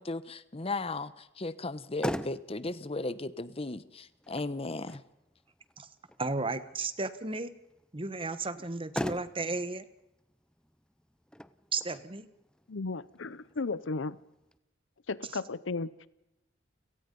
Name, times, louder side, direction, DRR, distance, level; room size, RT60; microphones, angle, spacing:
voice 1, 0.0-5.0, left 2 dB, 30° left, 0.9 m, -36 dB
Motor vehicle (road), 1.6-14.6, equal, 5° left, 0.6 m, -43 dB
voice 2, 6.2-7.5 7.9-9.8 11.7-12.3, right 3 dB, 30° right, 1.1 m, -34 dB
voice 3, 12.7-14.2 15.1-16.1, left 3 dB, 75° left, 0.7 m, -35 dB
30.0 x 17.5 x 5.4 m
head